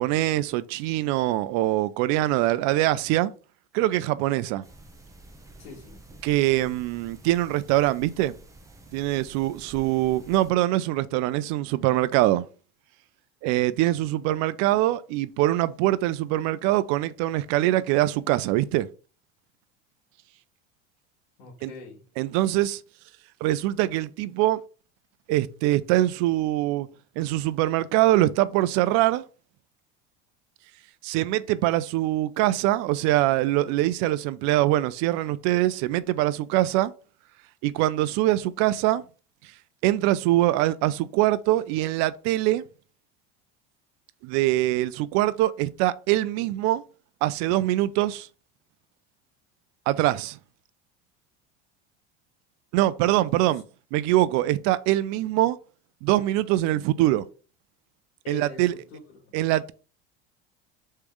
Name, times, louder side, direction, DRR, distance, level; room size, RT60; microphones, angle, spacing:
voice 1, 0.0-3.3 3.7-4.6 6.2-8.3 8.9-12.4 13.4-18.9 21.6-21.7 22.2-22.8 23.4-24.6 25.3-26.9 27.2-29.2 31.0-36.9 37.6-39.0 39.8-42.6 44.2-46.8 47.2-48.3 49.9-50.4 52.7-53.6 53.9-55.6 56.0-57.2 58.3-58.7 59.3-59.7, right 15 dB, 60° right, 0.5 m, -23 dB
sound 1, 4.6-10.5, right 2 dB, 10° right, 0.8 m, -49 dB
voice 2, 5.6-6.0 21.4-22.0 53.3-53.6 58.2-59.3, left 5 dB, 80° left, 1.7 m, -44 dB
3.4 x 3.2 x 4.6 m
supercardioid pair, 95°, 31 cm